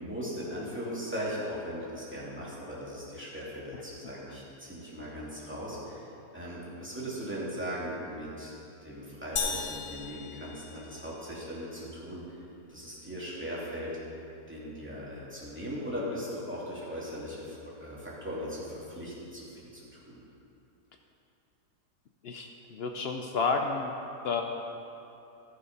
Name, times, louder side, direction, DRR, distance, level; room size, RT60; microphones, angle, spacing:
voice 1, 0.0-6.1 6.3-8.5 8.8-12.4 12.7-13.9 14.5-19.5 19.7-20.2, equal, 5° right, -8 dB, 2.5 m, -38 dB
sound 1, 9.4-11.3, left 5 dB, 55° left, 1.1 m, -36 dB
voice 2, 22.2-24.0 24.2-24.4, left 4 dB, 85° left, 3 dB, 0.5 m, -31 dB
14.5 x 6.6 x 5.3 m, 2.8 s
omnidirectional pair, 1.8 m